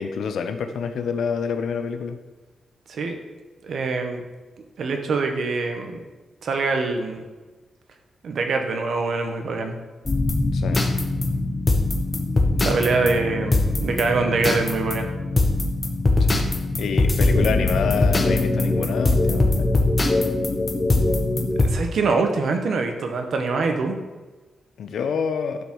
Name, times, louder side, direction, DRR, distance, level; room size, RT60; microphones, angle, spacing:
voice 1, 0.0-2.2 10.5-10.8 16.2-16.5 16.8-19.7 24.8-25.6, left 6 dB, 80° left, 8 dB, 0.9 m, -27 dB
voice 2, 3.6-4.2 4.8-6.0 6.4-7.2 8.2-9.7 12.6-15.1 21.6-24.0, right 3 dB, 60° right, 5 dB, 1.4 m, -24 dB
sound 1, 10.0-21.7, left 2 dB, 25° left, 1.0 m, -21 dB
11.0 x 5.2 x 6.3 m, 1.2 s
wide cardioid pair, 150°, 0 cm